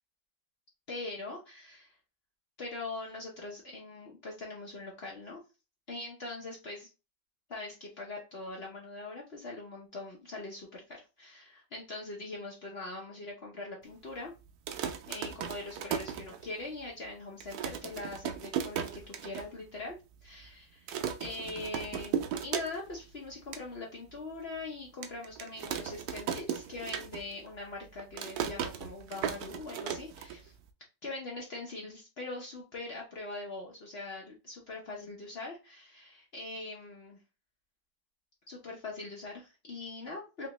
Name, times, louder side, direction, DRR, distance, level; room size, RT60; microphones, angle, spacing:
voice 1, 0.9-1.9 2.6-5.4 5.9-6.9 7.5-14.3 15.1-20.9 21.2-22.2 22.4-30.5 31.0-37.2 38.5-40.5, left 2 dB, 55° left, -2 dB, 0.7 m, -42 dB
sound 1, 14.5-16.8 17.1-17.2 17.4-19.5 19.8-19.9 20.1-20.5 20.9-23.0 23.3-23.6 24.2-24.3 25.0-27.5 27.7-30.7, right 8 dB, 70° right, 0.9 m, -36 dB
3.5 x 3.0 x 2.9 m, 0.29 s
omnidirectional pair, 2.0 m